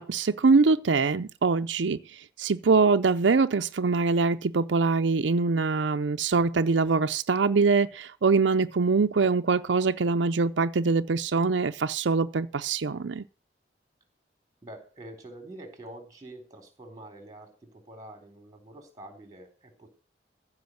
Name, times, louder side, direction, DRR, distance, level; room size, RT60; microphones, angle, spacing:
voice 1, 0.0-13.2, right 4 dB, 85° right, 0.6 m, -24 dB
voice 2, 14.6-19.9, right 1 dB, 20° right, 3.7 m, -46 dB
15.0 x 5.1 x 7.8 m
head